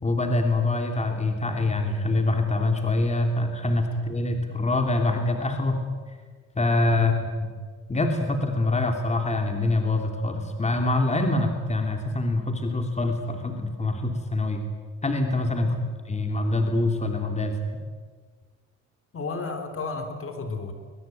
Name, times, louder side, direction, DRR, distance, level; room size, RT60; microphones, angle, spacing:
voice 1, 0.0-5.8 6.5-7.1 7.4-7.5 7.9-14.6 15.0-15.7 16.1-17.6, left 2 dB, 20° left, 4 dB, 3.1 m, -25 dB
voice 2, 19.1-20.7, left 4 dB, 45° left, 6 dB, 3.8 m, -33 dB
22.0 x 21.5 x 9.3 m, 1.5 s
cardioid pair, 90°, 30 cm